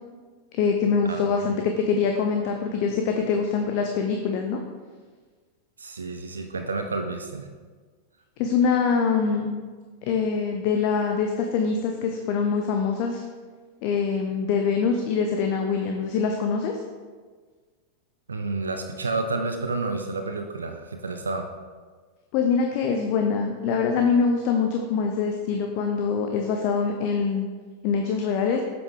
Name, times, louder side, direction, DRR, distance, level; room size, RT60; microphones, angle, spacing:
voice 1, 0.5-4.6 8.4-9.6 10.0-13.2 13.8-16.7 22.3-27.5 27.8-28.6, left 5 dB, 45° left, 3 dB, 0.6 m, -24 dB
voice 2, 1.1-1.5 5.8-7.5 18.3-21.5, right 3 dB, 75° right, 6 dB, 0.5 m, -30 dB
8.0 x 6.0 x 3.8 m, 1.5 s
figure-of-eight pair, 90°, 0 cm